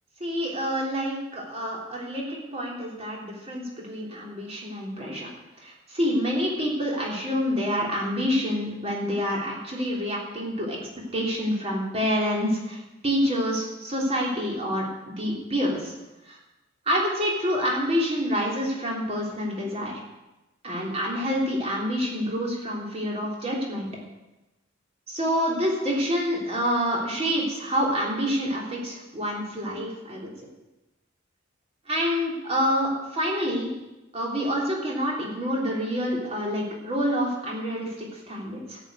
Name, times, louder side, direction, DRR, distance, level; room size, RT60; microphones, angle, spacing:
voice 1, 0.2-5.3 5.6-10.8 11.1-15.9 16.2-16.4 16.8-20.0 20.6-23.9 25.1-30.3 31.9-33.7 34.1-38.8, equal, 30° right, -2 dB, 3.5 m, -27 dB
13.5 x 6.4 x 9.5 m, 1.0 s
head